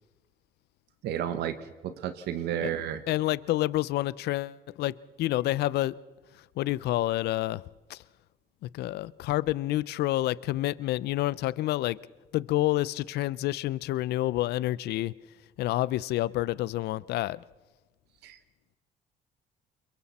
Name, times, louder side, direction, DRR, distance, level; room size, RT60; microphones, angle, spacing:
voice 1, 1.0-1.6 1.8-3.0 18.2-18.4, right 10 dB, 80° right, 1.2 m, -31 dB
voice 2, 3.1-6.0 6.6-7.6 7.9-8.0 8.7-12.0 12.3-15.1 15.6-17.4, left 16 dB, 75° left, 0.6 m, -28 dB
29.0 x 22.0 x 4.3 m
cardioid pair, 110°, 17 cm